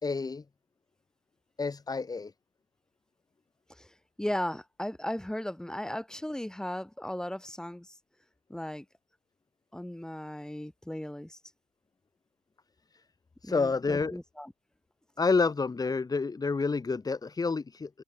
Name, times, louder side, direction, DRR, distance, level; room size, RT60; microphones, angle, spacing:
voice 1, 0.0-0.4 1.6-2.3 12.9-13.0 13.4-14.2 15.2-17.9, left 4 dB, 20° left, 2.5 m, -29 dB
voice 2, 3.7-8.0 8.5-8.9 9.7-11.4 13.4-14.5, left 1 dB, 5° left, 2.2 m, -36 dB
open air
cardioid pair, 110°, 17 cm